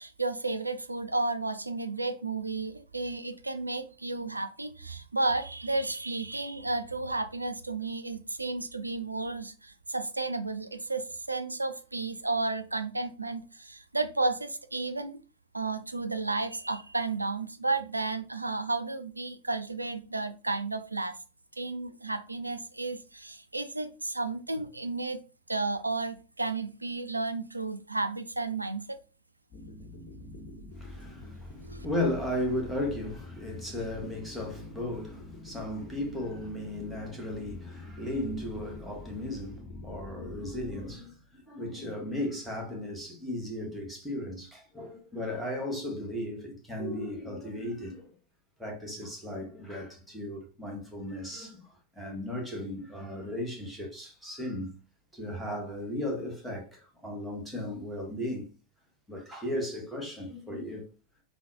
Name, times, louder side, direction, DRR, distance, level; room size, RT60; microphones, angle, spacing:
voice 1, 0.0-15.2 15.5-21.2 21.6-25.2 25.5-29.0 31.6-31.9, right 3 dB, 85° right, 0.3 m, -32 dB
sound 1, 29.5-41.0, left 2 dB, 40° left, 1.0 m, -45 dB
voice 2, 30.8-48.1 48.6-51.7 51.9-54.8 55.1-58.5 59.1-60.9, left 1 dB, 5° right, 1.0 m, -36 dB
3.7 x 2.1 x 2.7 m
figure-of-eight pair, 90°, 0 cm